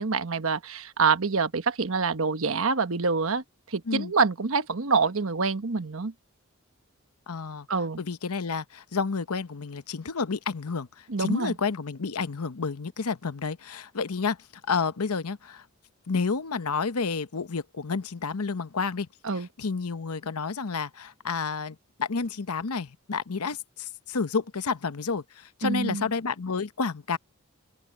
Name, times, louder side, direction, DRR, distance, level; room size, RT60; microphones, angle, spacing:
voice 1, 0.0-6.1 7.7-8.0 11.1-11.5 19.2-19.5 25.6-26.0, right 4 dB, 70° right, 1.1 m, -26 dB
voice 2, 7.3-7.7 8.0-15.7 16.1-27.2, left 4 dB, 90° left, 0.9 m, -30 dB
open air
head